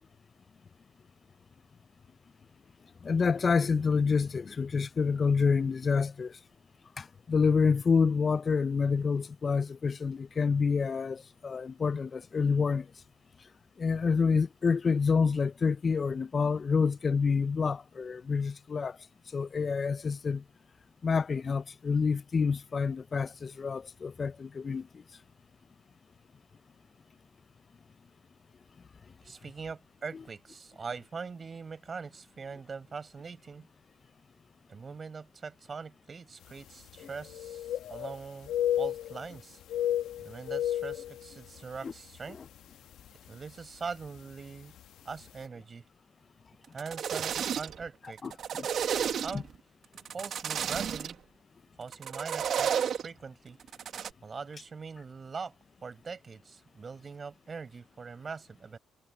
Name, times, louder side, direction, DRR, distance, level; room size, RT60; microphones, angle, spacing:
voice 1, 3.0-6.4 7.0-12.9 13.8-19.0 19.3-20.4 21.0-24.9 41.8-41.9 42.3-42.4 48.2-48.7 49.3-49.4, left 5 dB, 40° left, 0.5 m, -28 dB
voice 2, 29.2-33.7 34.7-39.6 40.2-42.4 43.3-44.7 45.0-45.9 46.7-48.2 49.2-49.5 50.1-51.2 51.8-53.6 54.2-55.5 55.8-58.8, right 5 dB, 35° right, 5.6 m, -42 dB
sound 1, 36.5-36.6 36.9-38.2 38.4-39.4 39.6-41.8 42.2-42.4 43.0-43.3 44.3-44.4 44.8-44.9, left 11 dB, 85° left, 1.2 m, -32 dB
sound 2, 46.6-47.9 48.2-49.6 50.0-51.1 51.9-53.1 53.6-54.1, right 8 dB, 65° right, 1.5 m, -32 dB
cardioid pair, 90°, 0 cm